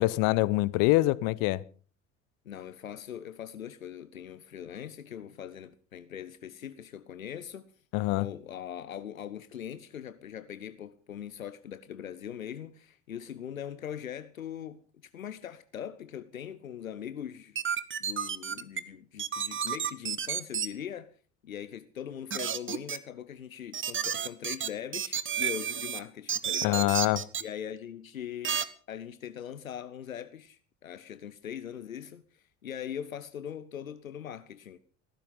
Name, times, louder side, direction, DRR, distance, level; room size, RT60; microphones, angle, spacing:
voice 1, 0.0-1.6 7.9-8.3 26.6-27.2, left 19 dB, 55° left, 0.9 m, -25 dB
voice 2, 2.4-7.7 8.1-21.1 21.4-27.1 27.4-28.6 28.9-34.8, left 9 dB, 85° left, 0.8 m, -41 dB
sound 1, 17.6-18.8 19.2-20.7 22.3-23.0 23.7-26.0 26.3-27.4 28.4-28.7, right 8 dB, 30° right, 1.4 m, -31 dB
16.5 x 15.0 x 5.5 m
figure-of-eight pair, 60°, 40 cm